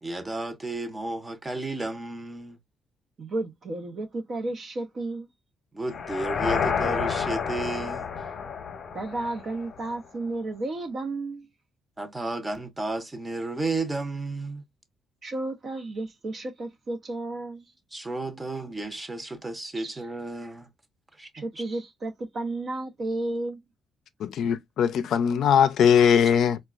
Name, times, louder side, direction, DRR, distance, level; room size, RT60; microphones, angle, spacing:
voice 1, 0.0-2.6 5.7-8.3 12.0-14.6 17.9-20.7 21.2-21.6, right 2 dB, 20° right, 0.8 m, -33 dB
voice 2, 3.2-5.3 8.9-11.5 15.2-17.7 19.7-20.0 21.3-23.6, right 2 dB, 50° right, 0.6 m, -32 dB
sound 1, 5.9-10.0, left 6 dB, 50° left, 0.7 m, -30 dB
voice 3, 24.2-26.6, left 8 dB, 75° left, 0.4 m, -20 dB
4.0 x 2.2 x 2.3 m
cardioid pair, 90°, 0 cm